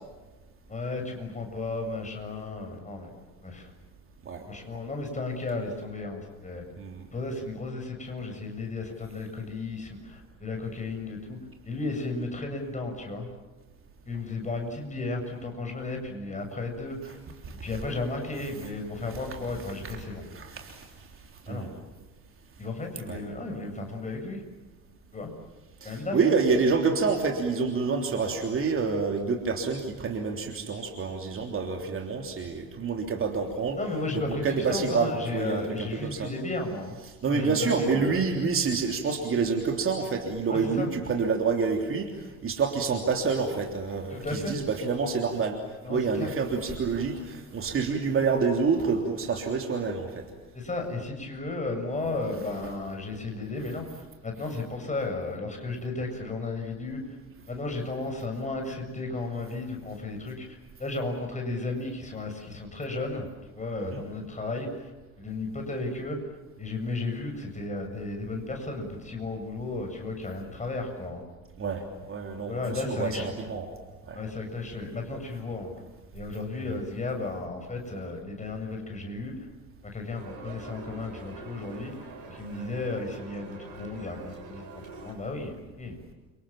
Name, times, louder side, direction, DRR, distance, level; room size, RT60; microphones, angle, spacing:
voice 1, 0.7-3.1 3.4-3.7 4.5-6.6 7.1-11.4 11.6-13.3 14.1-17.2 17.6-20.2 21.5-21.7 22.6-24.4 25.1-25.3 25.8-26.3 33.8-37.0 37.3-38.2 40.5-40.9 44.1-44.6 45.8-46.3 50.5-57.1 57.5-63.3 63.6-64.9 65.2-66.2 66.6-71.2 72.3-73.4 74.1-75.7 76.1-79.5 79.8-86.0, left 3 dB, 15° left, 3 dB, 7.6 m, -34 dB
voice 2, 20.3-21.1 21.5-21.7 23.1-23.2 25.8-33.8 34.4-36.3 37.2-45.6 45.9-50.2 63.9-64.0 71.6-71.8 72.1-73.7 74.1-74.2 76.5-76.6, right 5 dB, 30° right, 3 dB, 3.4 m, -28 dB
sound 1, 80.1-85.1, right 3 dB, 65° right, 7.1 m, -44 dB
29.5 x 26.5 x 7.5 m, 1.2 s
figure-of-eight pair, 65°, 43 cm